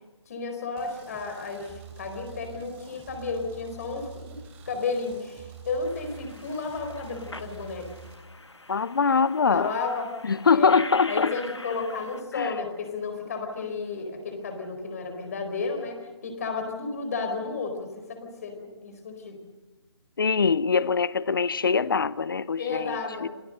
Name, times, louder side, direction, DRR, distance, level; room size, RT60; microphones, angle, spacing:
voice 1, 0.3-4.4 4.7-7.9 9.4-10.1 10.5-10.8 11.1-19.4 22.6-23.3, left 4 dB, 35° left, 4.4 m, -32 dB
sound 1, 0.8-8.1, right 5 dB, 10° right, 3.0 m, -46 dB
sound 2, 5.8-12.2, left 2 dB, 80° left, 1.3 m, -43 dB
voice 2, 8.7-9.7 10.3-11.3 12.4-12.5 20.2-23.3, left 5 dB, 50° left, 0.7 m, -23 dB
27.0 x 18.5 x 6.6 m
figure-of-eight pair, 150°, 14 cm